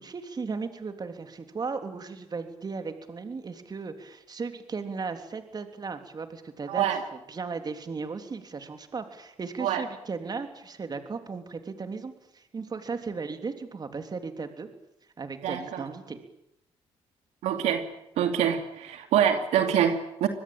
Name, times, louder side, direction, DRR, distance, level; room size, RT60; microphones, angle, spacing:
voice 1, 0.0-6.9 7.1-14.7 15.2-16.2, right 4 dB, 35° right, 7 dB, 3.4 m, -36 dB
voice 2, 6.7-7.0 9.6-9.8 15.4-15.9 17.4-17.8 18.2-20.3, right 9 dB, 90° right, 6 dB, 2.7 m, -25 dB
24.5 x 20.5 x 9.0 m, 0.80 s
cardioid pair, 90°, 11 cm